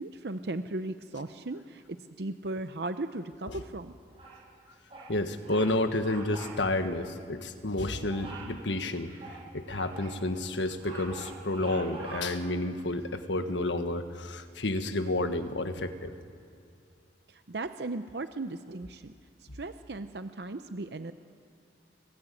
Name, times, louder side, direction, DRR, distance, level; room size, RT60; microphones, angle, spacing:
voice 1, 0.0-4.0 17.3-19.1 19.5-21.1, right 2 dB, 60° right, 10 dB, 0.7 m, -37 dB
Bird vocalization bird call bird song, 4.1-4.5 4.9-5.1 5.4-5.7 6.0-6.6 6.9-7.0 8.1-8.5 9.0-10.1 10.6-12.5, right 3 dB, 30° right, 7.6 m, -45 dB
voice 2, 5.1-9.1 9.5-16.1, left 2 dB, 85° left, 8 dB, 1.5 m, -30 dB
26.0 x 19.5 x 8.5 m, 2.5 s
head